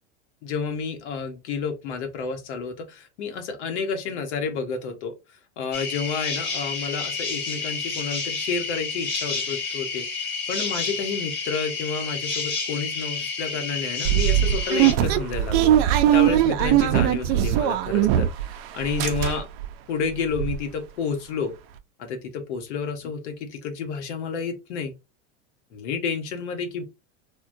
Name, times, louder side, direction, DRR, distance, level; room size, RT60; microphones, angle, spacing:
voice 1, 0.4-5.2 5.6-18.3 18.7-19.5 19.9-21.5 22.0-24.9 25.7-26.8, left 5 dB, 75° left, 0.9 m, -30 dB
sound 1, 5.7-14.9, left 4 dB, 30° left, 1.1 m, -30 dB
sound 2, 14.0-18.5 18.8-19.7 20.0-20.1 20.3-20.6, right 11 dB, 60° right, 0.5 m, -20 dB
3.6 x 2.2 x 2.5 m
supercardioid pair, 135°, 35 cm